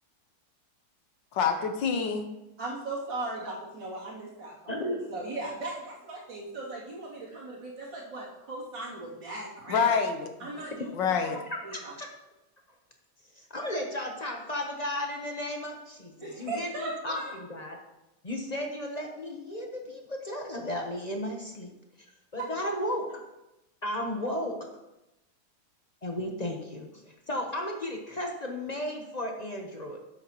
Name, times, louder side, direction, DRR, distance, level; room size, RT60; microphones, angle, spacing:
voice 1, 1.3-2.3 9.7-10.5 10.9-11.4, left 6 dB, 65° left, 6 dB, 1.5 m, -27 dB
voice 2, 2.6-4.8 5.1-9.8 10.4-10.9 11.6-11.9 16.2-17.3 22.4-22.7, right 2 dB, 60° right, -6 dB, 3.4 m, -38 dB
voice 3, 4.7-5.1 10.5-10.8 11.3-12.1 13.3-17.8 18.2-21.7 22.3-23.1 23.8-24.7 26.0-30.0, left 1 dB, 40° left, 2 dB, 0.6 m, -34 dB
12.0 x 8.7 x 3.0 m, 0.95 s
omnidirectional pair, 2.3 m